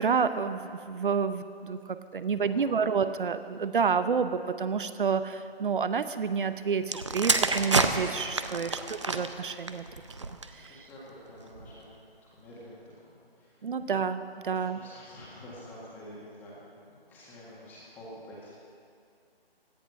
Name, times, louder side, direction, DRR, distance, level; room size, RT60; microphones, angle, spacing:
voice 1, 0.0-8.8 9.1-9.8 10.2-10.7 13.6-14.8, right 6 dB, 55° right, 12 dB, 0.8 m, -29 dB
voice 2, 2.4-2.8 5.2-5.3 8.5-8.9 10.5-12.0 12.3-13.8 14.4-18.5, left 1 dB, 5° left, -7 dB, 1.7 m, -48 dB
sound 1, 6.8-10.7 11.5-11.7, right 3 dB, 30° right, 0.5 m, -29 dB
17.0 x 11.0 x 6.0 m, 2.4 s
hypercardioid pair, 165°, 31 cm